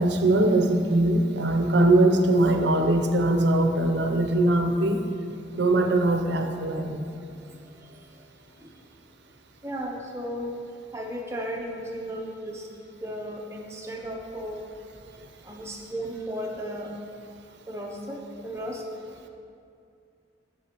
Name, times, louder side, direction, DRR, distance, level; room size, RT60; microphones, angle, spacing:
voice 1, 0.0-5.0 5.6-7.0, right 2 dB, 65° right, 5 dB, 0.6 m, -21 dB
voice 2, 9.6-10.5 10.9-12.7 13.0-14.7 15.4-16.9 17.7-18.8, equal, 15° right, 0 dB, 0.6 m, -35 dB
8.2 x 6.9 x 2.9 m, 2.4 s
head